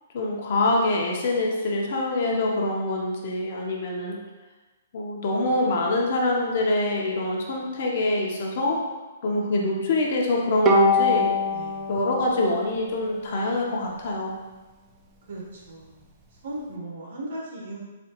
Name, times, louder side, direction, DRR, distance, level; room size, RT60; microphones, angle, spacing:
voice 1, 0.1-4.2 4.9-8.8 9.2-11.3 11.9-14.3, left 2 dB, 50° left, -1 dB, 0.7 m, -25 dB
Bowed string instrument, 10.6-14.0, left 2 dB, 20° right, 0.3 m, -24 dB
voice 2, 11.5-11.8 15.3-16.0 16.3-17.8, right 1 dB, 65° right, -3 dB, 1.1 m, -37 dB
4.1 x 2.3 x 2.9 m, 1.2 s
hypercardioid pair, 155°, 0 cm